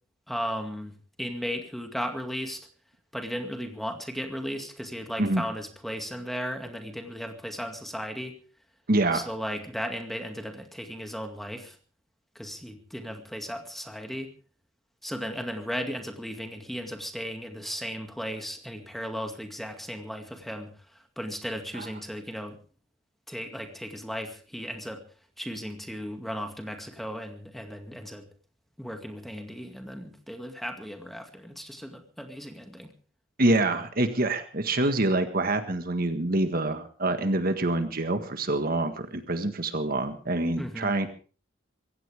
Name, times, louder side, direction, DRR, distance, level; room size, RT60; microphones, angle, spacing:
voice 1, 0.3-2.7 3.1-8.3 9.1-11.8 12.4-14.3 15.0-22.6 23.3-25.0 25.4-28.3 28.8-32.9 40.6-40.9, equal, ahead, 5 dB, 2.1 m, -36 dB
voice 2, 8.9-9.3 21.7-21.9 33.4-41.1, right 2 dB, 50° right, 8 dB, 1.6 m, -26 dB
23.5 x 16.5 x 3.5 m, 0.39 s
head